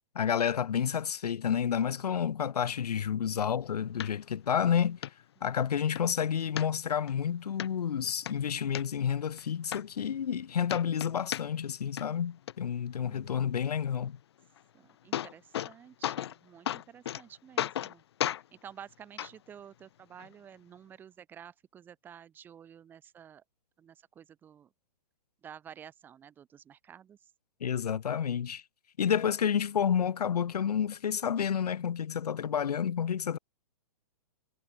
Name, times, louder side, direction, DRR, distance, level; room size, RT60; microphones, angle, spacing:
voice 1, 0.2-5.0 5.4-14.2 27.6-28.6 29.0-33.4, left 8 dB, 85° left, 1.9 m, -30 dB
sound 1, 4.0-4.1 4.6-4.7 5.0-5.1 5.6-6.0 6.6-7.1 7.6-7.7 8.1-8.8 9.4-9.5 9.7-10.4 10.7-11.7 12.0-12.5 14.6-14.7 14.9-15.7 16.0-16.4 16.7-17.2 17.6-17.9 18.2-18.4 19.2-19.3 20.2-20.3, left 11 dB, 45° left, 2.1 m, -34 dB
voice 2, 13.0-13.8 14.7-18.0 18.5-23.4 23.8-24.7 25.4-27.3, right 8 dB, 10° right, 3.7 m, -51 dB
hypercardioid pair, 180°, 20 cm